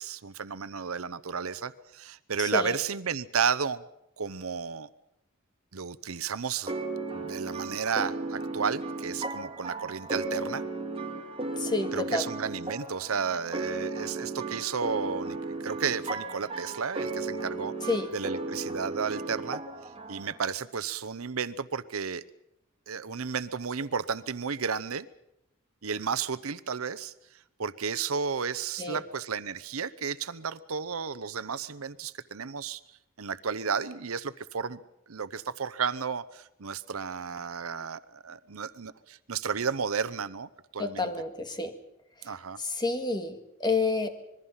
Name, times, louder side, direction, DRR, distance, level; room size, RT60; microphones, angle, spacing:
voice 1, 0.0-3.8 4.2-4.9 5.7-6.7 7.1-10.6 11.9-17.7 18.1-19.6 20.1-22.2 22.9-25.1 25.8-27.1 27.6-32.8 33.2-34.8 35.1-41.1 42.2-42.6, right 6 dB, 90° right, 16 dB, 0.8 m, -33 dB
voice 2, 2.4-2.8 11.6-12.3 17.9-18.1 28.8-29.0 40.8-41.7 42.6-44.1, left 3 dB, 20° left, 7 dB, 1.9 m, -29 dB
sound 1, 6.7-20.4, right 3 dB, 25° right, 2.5 m, -35 dB
26.0 x 21.5 x 5.7 m, 0.83 s
head